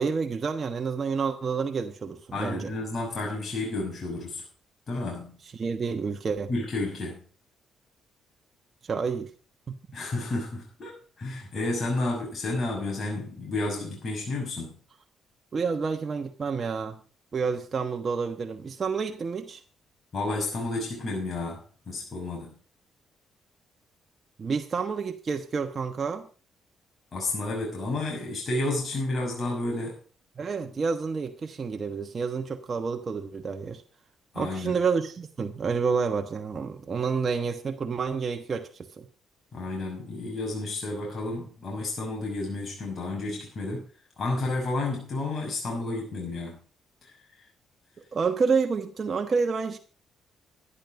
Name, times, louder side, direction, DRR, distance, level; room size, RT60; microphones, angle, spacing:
voice 1, 0.0-2.7 5.5-6.5 8.8-9.3 9.7-9.8 15.5-17.0 17.3-19.6 24.4-26.3 30.4-33.8 34.3-39.1 48.1-49.8, right 5 dB, 40° right, 1.2 m, -29 dB
voice 2, 2.3-4.4 4.9-5.4 6.5-7.2 9.9-14.8 20.1-22.6 27.1-30.0 34.3-34.8 39.5-43.9 44.2-46.6 47.0-47.1, left 2 dB, 40° left, 6.0 m, -31 dB
12.0 x 11.0 x 5.1 m
cardioid pair, 90°, 0 cm